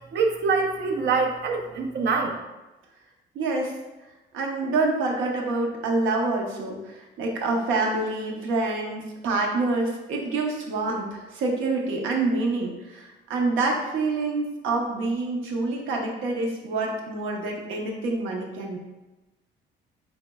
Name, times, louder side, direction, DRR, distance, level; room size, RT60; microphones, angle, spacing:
voice 1, 0.1-2.4, right 4 dB, 60° right, 2 dB, 0.5 m, -24 dB
voice 2, 3.3-3.8 4.3-18.8, right 3 dB, 85° right, 0 dB, 0.7 m, -27 dB
4.3 x 3.1 x 2.2 m, 1.1 s
cardioid pair, 90°, 20 cm